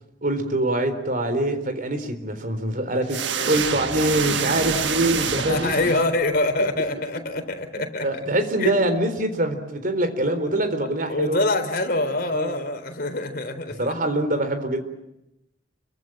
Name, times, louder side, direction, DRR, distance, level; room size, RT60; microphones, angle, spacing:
voice 1, 0.2-5.7 7.1-7.2 7.7-11.4 12.3-12.6 13.8-14.8, right 1 dB, 50° right, 9 dB, 3.9 m, -24 dB
sound 1, 3.1-6.5, right 6 dB, 75° right, 1.4 m, -27 dB
voice 2, 3.3-3.6 5.5-8.1 8.6-8.8 11.1-13.9, left 2 dB, 55° left, 6 dB, 3.9 m, -25 dB
29.5 x 24.0 x 7.6 m, 0.89 s
head